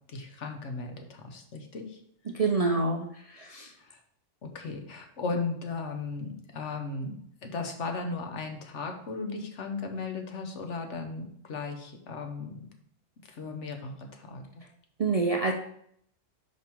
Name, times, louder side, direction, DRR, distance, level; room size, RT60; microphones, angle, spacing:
voice 1, 0.1-2.0 3.8-4.0 4.4-7.1 7.4-12.6 13.3-14.4, left 4 dB, 70° left, 4 dB, 1.2 m, -36 dB
voice 2, 2.3-3.7 15.0-15.5, right 3 dB, 50° right, 2 dB, 0.4 m, -27 dB
5.2 x 5.0 x 4.5 m, 0.68 s
omnidirectional pair, 1.3 m